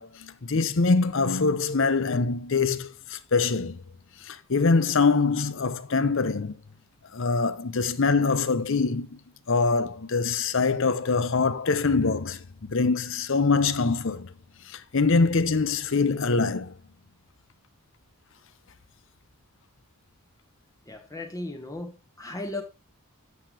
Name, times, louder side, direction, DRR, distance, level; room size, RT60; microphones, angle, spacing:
voice 1, 0.0-3.8 4.3-6.6 7.1-9.2 9.5-14.3 14.7-16.7, left 4 dB, 60° left, 0.7 m, -24 dB
voice 2, 20.9-22.6, left 2 dB, 15° left, 1.1 m, -36 dB
9.5 x 6.8 x 2.8 m
head